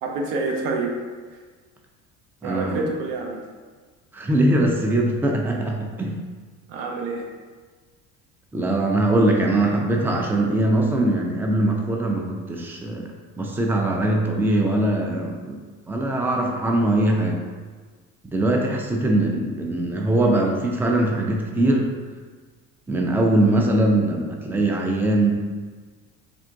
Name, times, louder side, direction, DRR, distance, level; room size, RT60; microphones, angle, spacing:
voice 1, 0.0-0.9 2.4-3.5 6.7-7.3, right 3 dB, 70° right, 1 dB, 0.8 m, -27 dB
voice 2, 2.4-2.9 4.1-6.2 8.5-13.1 13.4-15.6 15.9-17.4 18.3-21.9 22.9-25.3, right 1 dB, 5° right, 0 dB, 0.5 m, -21 dB
3.6 x 2.4 x 4.5 m, 1.5 s
supercardioid pair, 85°, 35 cm